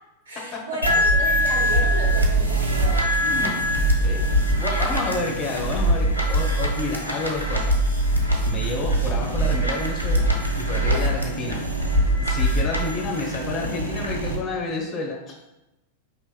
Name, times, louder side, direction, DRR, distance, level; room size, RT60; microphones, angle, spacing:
voice 1, 0.3-3.1 4.7-5.4 10.9-11.1, right 1 dB, 65° right, -1 dB, 1.1 m, -33 dB
sound 1, 0.8-14.4, right 1 dB, 85° right, 0.6 m, -22 dB
voice 2, 3.2-4.2 4.5-7.8 8.5-10.3 10.5-11.6 12.2-15.3, left 3 dB, 35° left, 0 dB, 0.9 m, -30 dB
5.0 x 2.8 x 2.3 m, 0.94 s
figure-of-eight pair, 90°, 0 cm